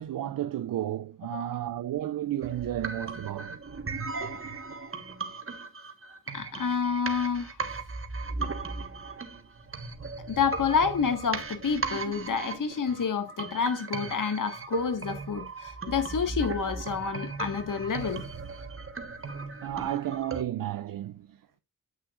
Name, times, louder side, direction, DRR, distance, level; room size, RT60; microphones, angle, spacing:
voice 1, 0.0-3.6 19.6-21.6, right 12 dB, 70° right, 0.6 m, -33 dB
sound 1, 2.4-20.4, right 4 dB, 40° right, 1.5 m, -37 dB
voice 2, 6.3-7.6 10.3-18.2, left 6 dB, 60° left, 1.8 m, -29 dB
9.5 x 8.4 x 2.5 m
cardioid pair, 70°, 35 cm